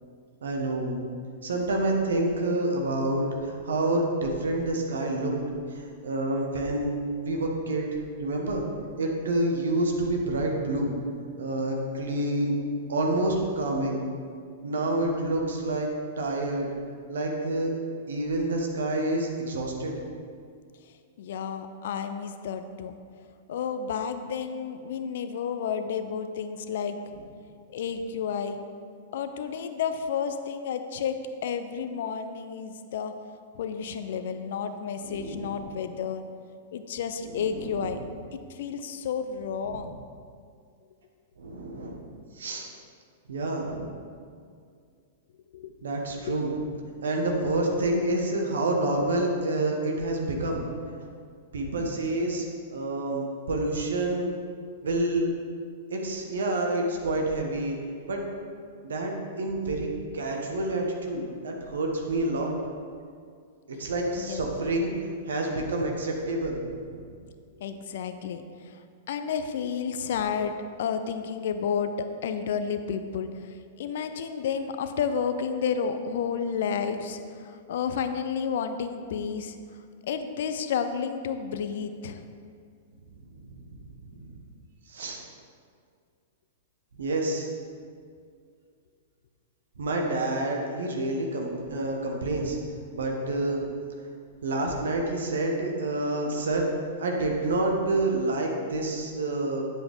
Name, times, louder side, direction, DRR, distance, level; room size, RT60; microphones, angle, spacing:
voice 1, 0.4-1.0 1.4-5.3 5.7-6.9 7.2-7.9 8.2-8.6 9.0-10.9 11.4-12.6 12.9-14.0 14.6-15.9 16.2-16.7 17.1-17.7 18.1-20.0 35.0-35.6 37.3-37.9 39.7-39.8 41.4-42.0 42.3-42.7 43.3-43.9 45.8-46.6 47.0-50.6 51.5-52.4 52.7-54.3 54.8-55.3 55.9-57.8 58.1-58.2 58.8-59.9 60.1-62.5 63.7-64.9 65.3-67.1 83.2-83.6 84.1-84.3 84.9-85.2 87.0-87.5 89.8-92.6 92.9-93.7 94.4-96.7 97.0-99.6, right 2 dB, 70° right, 1 dB, 1.4 m, -28 dB
voice 2, 21.2-22.9 23.5-27.0 27.7-28.6 29.1-31.2 31.4-33.1 33.5-36.2 36.7-38.0 38.5-40.0 45.5-45.7 46.2-46.4 64.2-64.5 67.6-82.2, left 6 dB, 60° left, 9 dB, 0.6 m, -31 dB
9.2 x 7.7 x 3.7 m, 2.2 s
figure-of-eight pair, 105°, 0 cm